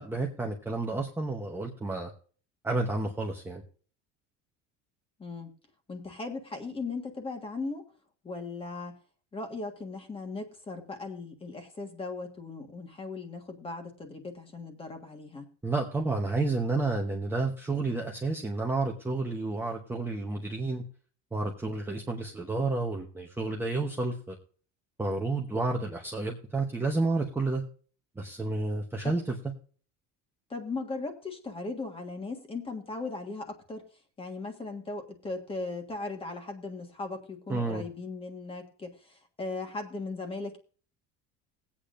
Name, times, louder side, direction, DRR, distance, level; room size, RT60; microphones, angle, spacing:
voice 1, 0.0-2.1 2.6-3.6 15.6-20.8 21.3-24.4 25.0-27.6 28.2-29.3 37.5-37.8, right 3 dB, 5° right, 0 dB, 0.9 m, -30 dB
voice 2, 5.2-5.5 5.9-7.8 8.2-8.9 9.3-15.5 29.0-29.1 30.5-33.8 34.2-40.6, left 3 dB, 15° left, 5 dB, 1.5 m, -38 dB
20.0 x 8.6 x 2.5 m, 0.42 s
cardioid pair, 160°, 33 cm